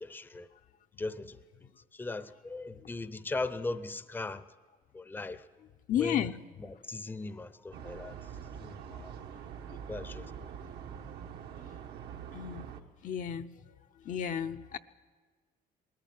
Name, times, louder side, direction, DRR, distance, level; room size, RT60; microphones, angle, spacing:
voice 1, 0.0-0.5 1.0-1.4 1.9-4.4 4.9-5.4 5.9-6.3 6.6-8.2 8.6-9.1 9.9-10.2, left 3 dB, 10° left, 0.6 m, -38 dB
voice 2, 5.9-6.4 10.1-10.3 12.3-12.7 13.0-13.5 14.0-14.8, left 9 dB, 50° left, 0.7 m, -32 dB
sound 1, 7.7-12.8, right 8 dB, 75° right, 1.4 m, -44 dB
20.0 x 14.0 x 9.2 m
cardioid pair, 110°, 17 cm